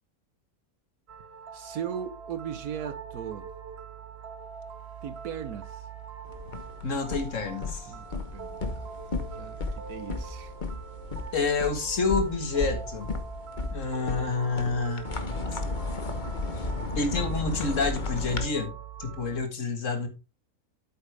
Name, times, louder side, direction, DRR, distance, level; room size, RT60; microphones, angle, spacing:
sound 1, 1.1-19.4, right 6 dB, 50° right, 1.1 m, -43 dB
voice 1, 1.5-3.5 5.0-5.8 7.9-8.9 9.3-10.5, right 8 dB, 80° right, 1.4 m, -38 dB
sound 2, 6.3-18.4, left 3 dB, 35° left, 1.2 m, -34 dB
voice 2, 6.8-7.9 11.3-13.1 13.7-15.1 15.5-15.6 16.9-18.7 19.0-20.1, left 4 dB, 55° left, 1.9 m, -28 dB
8.6 x 8.0 x 3.4 m
omnidirectional pair, 1.6 m